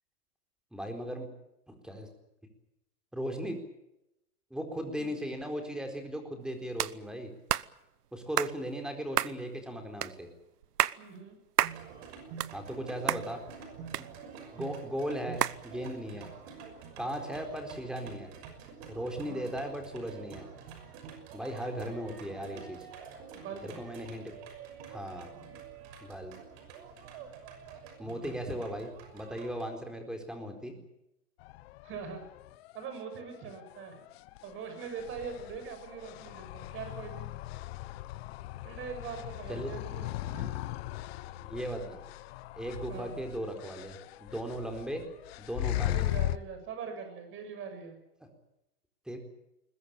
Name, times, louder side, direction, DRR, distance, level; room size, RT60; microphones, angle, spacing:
voice 1, 0.7-1.3 1.7-2.1 3.1-3.6 4.5-7.3 8.1-10.3 12.5-13.4 14.0-14.1 14.5-16.3 17.0-18.3 18.9-20.5 21.3-22.9 23.6-24.4 24.9-25.3 26.0-26.3 28.0-30.8 39.5-39.7 41.4-42.0 42.6-45.0 45.4-46.0 48.2-48.3 49.1-49.2, equal, ahead, 5 dB, 4.2 m, -37 dB
sound 1, 6.8-7.0 7.5-7.7 8.4-8.5 9.2-9.4 10.0-10.1 10.6-11.0 11.6-11.8 12.2-12.8 13.1-13.2 13.9-14.5 15.4-15.6, right 11 dB, 85° right, 1.0 m, -29 dB
voice 2, 11.0-11.4 19.3-19.5 23.3-23.8 25.3-25.5 28.0-28.3 31.8-32.2 32.7-34.0 34.4-37.3 38.6-40.5 42.9-43.2 45.9-48.0, right 6 dB, 25° right, 7 dB, 6.9 m, -42 dB
sound 2, 11.6-29.6, right 6 dB, 40° right, 6.2 m, -48 dB
sound 3, 31.4-46.4, left 15 dB, 40° left, 1.1 m, -38 dB
21.5 x 21.0 x 9.1 m, 0.87 s
hypercardioid pair, 145°, 46 cm